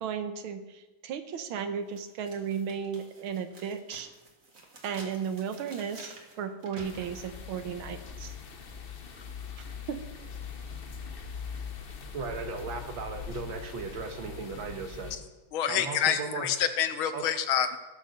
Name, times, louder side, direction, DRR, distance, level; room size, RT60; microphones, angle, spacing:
voice 1, 0.0-4.1 4.8-8.3 9.6-10.0, right 7 dB, 90° right, 9 dB, 1.8 m, -35 dB
sound 1, 1.3-1.4 1.9-7.4, right 2 dB, 40° right, 2.1 m, -51 dB
sound 2, 6.8-15.2, left 6 dB, 45° left, 0.7 m, -42 dB
voice 2, 12.1-15.1 15.7-16.5 17.1-17.2, right 4 dB, 75° right, 5 dB, 2.1 m, -36 dB
voice 3, 15.5-17.8, left 9 dB, 85° left, 10 dB, 1.7 m, -27 dB
16.5 x 6.6 x 6.4 m, 1.1 s
omnidirectional pair, 2.2 m